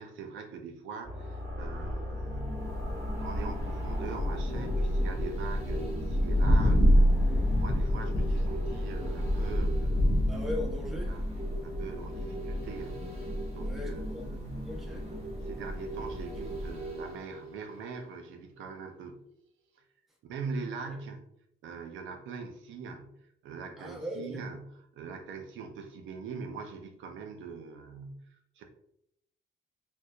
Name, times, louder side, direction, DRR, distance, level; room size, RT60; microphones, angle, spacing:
voice 1, 0.0-2.7 3.2-10.4 11.1-11.2 11.6-13.2 13.5-14.7 15.4-19.2 20.2-21.2 21.6-23.1 23.4-28.3 28.6-28.7, right 5 dB, 75° right, 4 dB, 0.4 m, -42 dB
sound 1, 1.0-9.5, left 1 dB, 20° left, 1.1 m, -39 dB
sound 2, 2.1-18.4 18.7-18.8, right 1 dB, 30° right, 0.8 m, -43 dB
Thunder, 2.4-17.0, equal, 55° left, 0.6 m, -29 dB
voice 2, 10.3-11.2 13.6-14.3 14.6-15.1 16.0-16.3 20.9-21.0 23.8-24.4, left 1 dB, ahead, -2 dB, 0.7 m, -39 dB
2.6 x 2.2 x 2.2 m, 0.75 s
cardioid pair, 90°, 20 cm